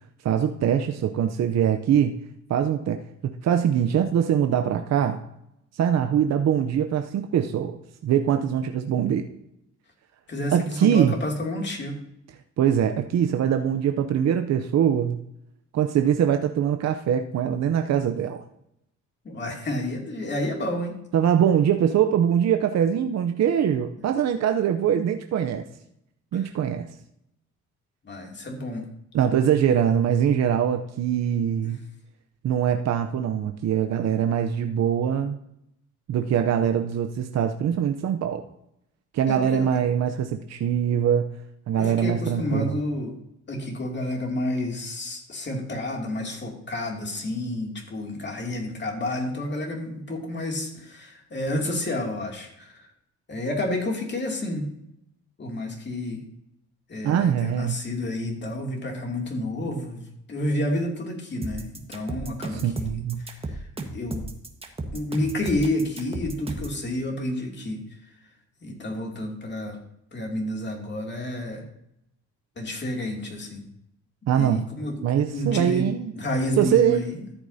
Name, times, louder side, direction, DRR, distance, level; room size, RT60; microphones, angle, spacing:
voice 1, 0.2-2.1 2.5-5.2 5.7-7.8 8.0-9.3 10.5-11.1 12.6-15.2 15.7-18.4 21.1-25.6 26.3-26.9 29.1-31.8 32.4-35.4 36.1-38.5 39.1-41.3 41.7-42.8 57.0-57.8 62.5-63.2 74.3-74.6 75.0-76.1 76.6-77.0, right 9 dB, 60° right, 6 dB, 0.7 m, -23 dB
voice 2, 10.3-12.0 19.2-21.0 24.0-24.1 26.3-26.4 28.0-28.8 31.6-31.7 39.3-39.8 41.8-43.2 43.5-52.9 53.3-54.8 55.4-56.2 56.9-63.6 63.9-64.3 64.9-67.8 68.6-69.8 70.1-71.6 72.6-73.6 74.3-75.0 75.3-75.9 76.1-77.2, left 1 dB, 35° left, 1 dB, 2.6 m, -30 dB
sound 1, 61.4-66.8, right 2 dB, 20° right, 1.4 m, -34 dB
13.5 x 8.2 x 2.7 m, 0.80 s
cardioid pair, 90°, 30 cm